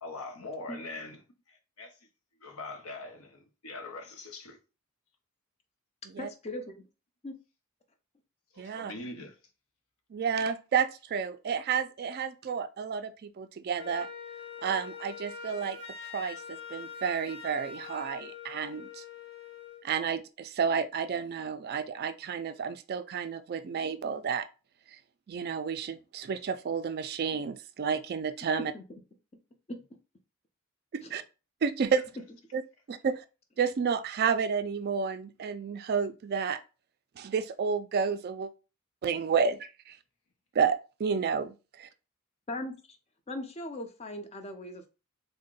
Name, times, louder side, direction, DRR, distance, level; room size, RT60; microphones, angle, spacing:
voice 1, 0.0-2.0 2.4-4.6 8.5-9.4, left 2 dB, 85° left, 0.7 m, -42 dB
voice 2, 6.2-6.8 7.2-7.3 28.6-28.8 29.7-29.8 31.0-31.2 42.5-42.8 43.3-44.9, left 1 dB, 30° left, 0.5 m, -38 dB
voice 3, 8.6-8.9 10.1-14.1 14.6-15.8 16.1-19.0 19.8-24.5 25.3-28.7 30.9-31.2 31.6-32.0 32.5-32.6 32.9-33.2 33.6-36.6 37.2-38.5 39.0-40.0 40.5-41.9, right 6 dB, 45° right, 0.3 m, -31 dB
Wind instrument woodwind instrument, 13.8-19.9, left 6 dB, 55° left, 0.8 m, -44 dB
3.6 x 2.1 x 3.7 m
head